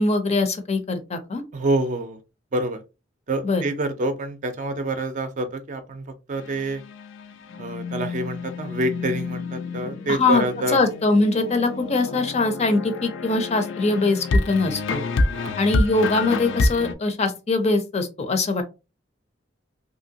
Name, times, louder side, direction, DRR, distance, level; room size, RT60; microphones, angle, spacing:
voice 1, 0.0-1.4 3.4-3.6 10.1-10.4 10.7-15.0 15.6-18.6, left 3 dB, 35° left, 0.5 m, -22 dB
voice 2, 1.5-2.2 2.5-2.8 3.3-6.8 7.6-10.8 15.3-15.6, right 2 dB, 40° right, 0.5 m, -27 dB
sound 1, 6.4-16.9, left 3 dB, 85° left, 0.4 m, -28 dB
2.9 x 2.7 x 2.7 m
head